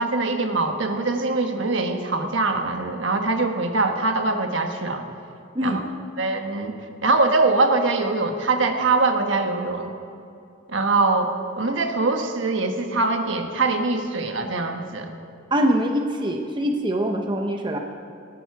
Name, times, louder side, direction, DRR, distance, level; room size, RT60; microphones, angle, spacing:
voice 1, 0.0-5.0 5.6-5.8 6.2-6.7 7.0-9.9 10.7-15.1, right 3 dB, 65° right, 5 dB, 1.3 m, -23 dB
voice 2, 15.5-17.8, equal, 25° right, 3 dB, 0.8 m, -23 dB
18.5 x 14.5 x 4.7 m, 2.6 s
head